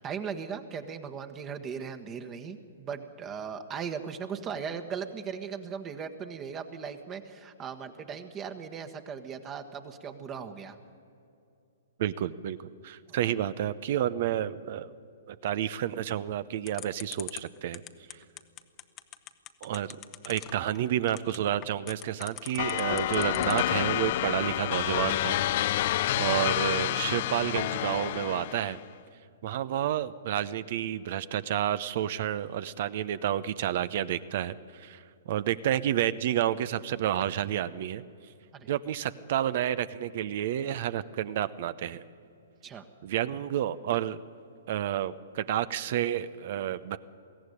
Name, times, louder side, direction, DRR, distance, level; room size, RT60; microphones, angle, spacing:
voice 1, 0.0-10.8 13.1-13.3 38.5-38.7 42.6-42.9, right 6 dB, 25° right, 6 dB, 1.3 m, -38 dB
voice 2, 12.0-12.6 12.8-14.9 15.3-17.8 19.6-20.0 20.2-28.8 29.4-38.0 38.7-42.0 43.0-44.2 44.7-47.0, right 11 dB, 50° right, 15 dB, 0.7 m, -30 dB
sound 1, 16.7-23.8, left 13 dB, 30° left, 1.0 m, -42 dB
sound 2, 22.6-28.8, left 14 dB, 50° left, 0.4 m, -29 dB
22.0 x 16.0 x 9.9 m, 2.6 s
hypercardioid pair, 120°, 0 cm